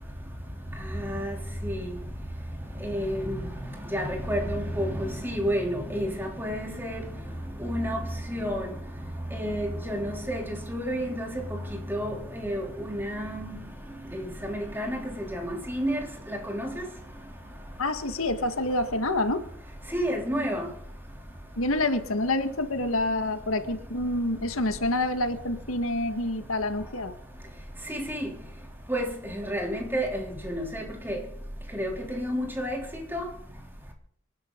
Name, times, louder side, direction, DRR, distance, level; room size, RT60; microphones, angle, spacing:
voice 1, 0.9-1.3 1.6-1.9 2.8-3.4 3.9-7.0 7.6-8.0 8.3-8.7 9.3-13.6 14.1-16.0 16.3-16.7 19.9-20.6 27.9-28.2 28.9-29.0 29.3-31.2 31.7-32.8 33.1-33.2, equal, 10° right, 3.3 m, -30 dB
voice 2, 17.8-19.4 21.6-27.1, left 2 dB, 85° left, 1.9 m, -27 dB
26.0 x 12.0 x 3.9 m
head